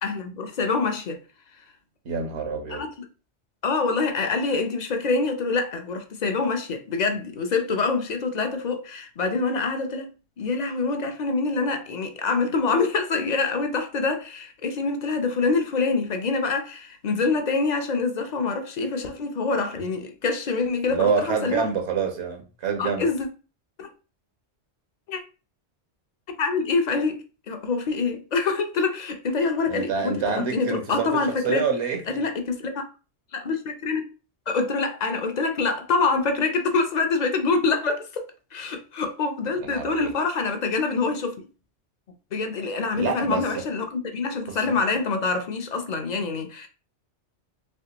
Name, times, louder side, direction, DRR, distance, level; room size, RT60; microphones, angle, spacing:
voice 1, 0.0-1.2 2.7-2.9 3.6-10.1 10.4-21.6 22.8-23.3 23.8-23.9 25.1-25.2 26.3-30.2 30.5-31.7 32.1-32.8 33.3-34.0 34.5-38.3 38.5-41.5 42.3-46.7, left 4 dB, 50° left, 0.5 m, -25 dB
voice 2, 2.0-2.8 20.9-23.1 29.7-32.0 39.6-40.1 42.9-43.6 44.5-44.8, right 6 dB, 75° right, 1.1 m, -27 dB
3.3 x 2.9 x 2.8 m
omnidirectional pair, 1.2 m